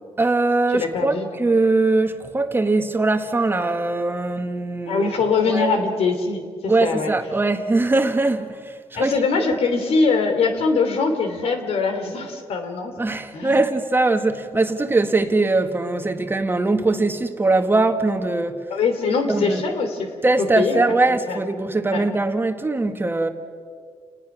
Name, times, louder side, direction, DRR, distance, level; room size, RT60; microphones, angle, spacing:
voice 1, 0.2-5.1 5.5-5.8 6.7-9.2 13.0-18.6 19.3-19.6 20.2-23.3, right 2 dB, 20° right, 1.4 m, -21 dB
voice 2, 0.7-1.3 4.9-7.1 8.9-12.9 13.3-13.6 18.7-20.1 20.5-20.8 21.3-21.4 21.9-22.0, left 4 dB, 75° left, 2.9 m, -22 dB
29.5 x 19.5 x 6.1 m
cardioid pair, 95°, 10 cm